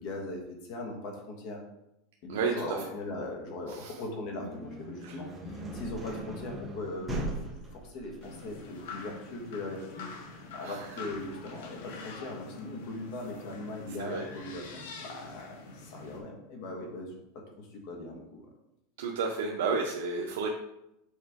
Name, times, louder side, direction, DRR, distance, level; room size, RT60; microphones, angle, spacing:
voice 1, 0.0-1.6 2.2-7.4 7.7-17.1 17.6-18.5, left 2 dB, 45° left, 1 dB, 1.4 m, -40 dB
voice 2, 2.3-2.8 3.7-4.0 5.0-5.2 10.6-11.0 13.9-14.3 19.0-20.5, right 4 dB, 80° right, 1 dB, 0.7 m, -32 dB
sound 1, 4.2-14.0, right 1 dB, 5° right, 1.0 m, -41 dB
sound 2, 8.2-16.2, left 4 dB, 85° left, 1.2 m, -45 dB
6.6 x 4.3 x 3.6 m, 0.85 s
supercardioid pair, 175°, 0 cm